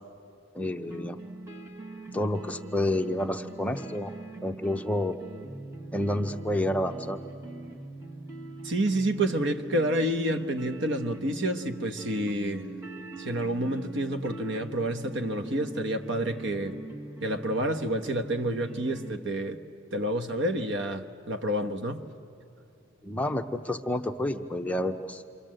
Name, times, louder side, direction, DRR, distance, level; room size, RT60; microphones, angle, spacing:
voice 1, 0.5-1.2 2.1-4.1 4.4-5.2 5.9-7.2 23.0-25.2, left 1 dB, 5° left, 0.7 m, -29 dB
sound 1, 0.9-19.2, right 2 dB, 15° right, 1.4 m, -42 dB
voice 2, 8.6-12.7 13.2-16.8 17.2-19.6 19.9-22.1, right 1 dB, 65° right, 1.2 m, -29 dB
28.0 x 25.5 x 7.7 m
head